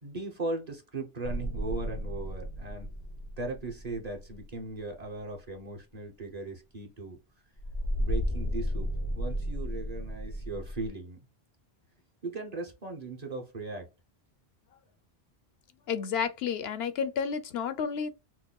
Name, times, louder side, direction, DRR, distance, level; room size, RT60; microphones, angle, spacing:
voice 1, 0.0-2.9 3.4-7.2 8.0-11.2 12.2-13.9, right 2 dB, 40° right, 1.0 m, -38 dB
sound 1, 1.2-4.8 7.6-10.9, equal, 25° left, 0.5 m, -34 dB
voice 2, 15.9-18.1, left 7 dB, 75° left, 0.8 m, -31 dB
5.9 x 2.1 x 2.3 m
omnidirectional pair, 1.1 m